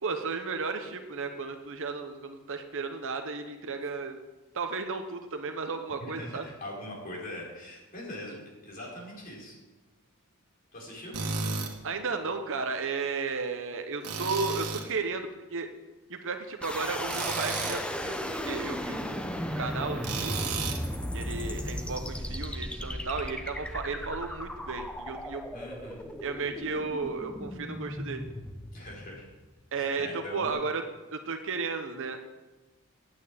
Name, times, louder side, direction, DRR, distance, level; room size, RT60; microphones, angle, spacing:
voice 1, 0.0-4.2 4.5-6.4 11.8-15.7 16.1-20.4 21.1-25.5 26.2-28.2 29.7-30.8 31.1-32.2, right 4 dB, 60° right, 6 dB, 1.0 m, -34 dB
voice 2, 6.0-8.3 8.6-9.6 10.7-11.2 25.5-26.1 28.7-29.2 29.7-30.6, left 1 dB, 40° left, -3 dB, 4.7 m, -42 dB
Tools, 11.1-11.7 14.0-14.9 17.1-17.8 20.0-20.8, right 4 dB, 85° right, 1.8 m, -33 dB
sound 1, 16.6-29.6, equal, 5° left, 0.8 m, -36 dB
9.2 x 9.0 x 8.6 m, 1.1 s
head